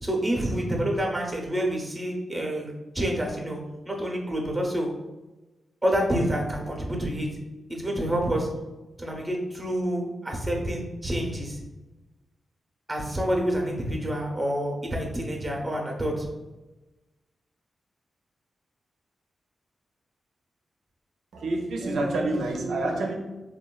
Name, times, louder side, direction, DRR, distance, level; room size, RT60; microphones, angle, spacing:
voice 1, 0.0-4.9 5.8-7.3 7.7-8.5 9.0-11.6 12.9-16.3, equal, 20° right, 0 dB, 0.7 m, -28 dB
voice 2, 21.3-23.2, right 2 dB, 80° right, 1 dB, 0.5 m, -27 dB
3.0 x 2.2 x 2.3 m, 1.1 s
supercardioid pair, 45°, 0 cm